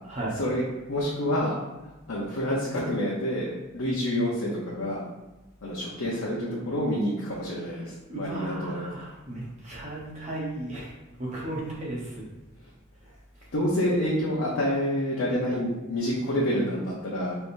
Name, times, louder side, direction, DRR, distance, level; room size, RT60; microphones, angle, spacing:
voice 1, 0.0-0.4 7.6-12.3, right 1 dB, 35° right, -4 dB, 1.0 m, -35 dB
voice 2, 0.9-1.6 2.1-5.0 5.6-8.9 13.5-17.4, equal, 80° left, -6 dB, 0.8 m, -28 dB
4.5 x 3.6 x 2.6 m, 1.1 s
head